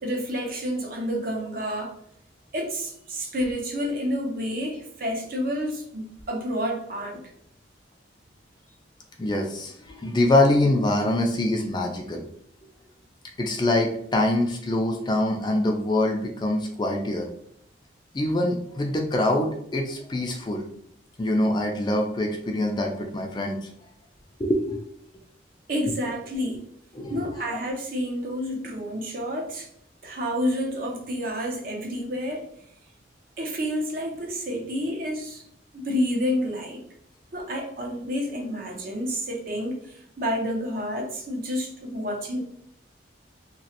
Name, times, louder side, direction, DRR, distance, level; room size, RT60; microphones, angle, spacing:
voice 1, 0.0-2.0 2.5-7.2 25.7-26.6 27.1-29.7 30.0-32.5 33.4-35.4 35.7-36.8 37.3-42.4, equal, 50° right, 0.6 m, -29 dB
voice 2, 9.2-12.2 13.4-17.3 18.1-20.7 21.2-23.7 24.4-24.8 26.9-27.3, left 1 dB, 25° left, 0.4 m, -24 dB
3.0 x 2.8 x 2.8 m
head